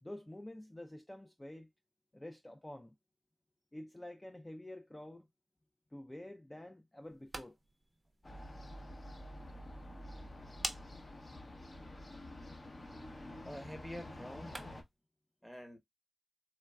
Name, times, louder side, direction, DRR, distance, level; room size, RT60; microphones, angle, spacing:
voice 1, 0.0-1.7 2.1-2.9 3.7-5.3 5.9-7.6, left 1 dB, 20° left, 0.4 m, -48 dB
sound 1, 7.0-15.0, right 2 dB, 30° right, 0.6 m, -50 dB
sound 2, 8.2-14.8, left 1 dB, 45° left, 0.8 m, -49 dB
voice 2, 13.4-14.6 15.4-15.8, equal, 5° left, 0.9 m, -47 dB
3.1 x 2.3 x 2.3 m
cardioid pair, 40°, 0 cm